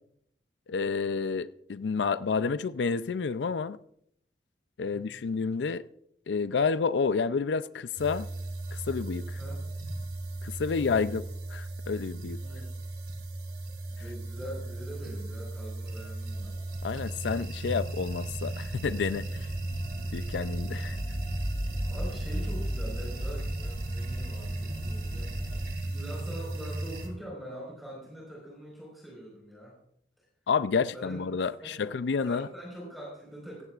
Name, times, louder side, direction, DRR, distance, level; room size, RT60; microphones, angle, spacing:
voice 1, 0.7-3.8 4.8-5.8 6.3-8.3 8.7-9.4 10.4-11.2 11.5-12.4 16.8-19.5 20.1-21.0 30.5-32.5, left 5 dB, 90° left, 0.4 m, -29 dB
voice 2, 4.8-5.1 9.3-9.6 10.3-11.2 12.4-12.7 13.9-16.6 21.9-29.8 30.9-31.2 31.6-31.9 32.2-33.6, equal, ahead, 4.6 m, -44 dB
sound 1, 8.0-27.1, right 2 dB, 60° right, 2.7 m, -36 dB
sound 2, 16.3-25.7, equal, 60° left, 2.4 m, -38 dB
17.0 x 15.0 x 2.4 m
head